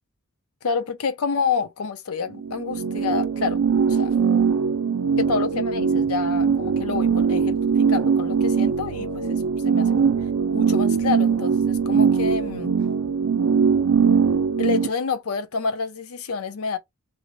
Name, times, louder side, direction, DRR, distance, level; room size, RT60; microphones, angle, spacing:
voice 1, 0.6-3.6 3.9-4.1 5.2-9.9 10.5-12.7 14.6-16.8, left 5 dB, 80° left, 0.6 m, -28 dB
sound 1, 2.3-14.9, right 6 dB, 85° right, 0.5 m, -21 dB
3.0 x 2.8 x 3.0 m
head